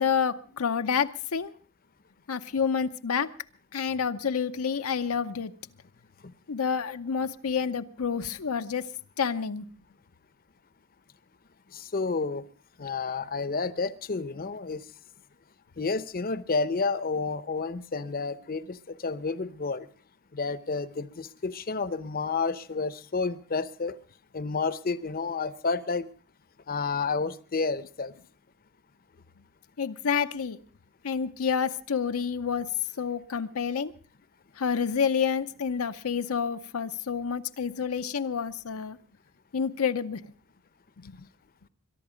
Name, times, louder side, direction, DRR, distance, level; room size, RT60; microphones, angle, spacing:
voice 1, 0.0-1.5 2.3-3.3 3.7-5.5 6.5-8.9 9.2-9.6 29.8-30.6 31.0-32.7 33.0-33.9 34.6-39.0 39.5-40.3 41.0-41.2, left 6 dB, 80° left, 9 dB, 0.7 m, -28 dB
voice 2, 11.7-12.4 12.8-14.8 15.8-19.9 20.3-23.9 24.3-26.1 26.7-28.1, left 4 dB, 40° left, 15 dB, 0.7 m, -30 dB
22.5 x 11.5 x 5.0 m, 0.40 s
head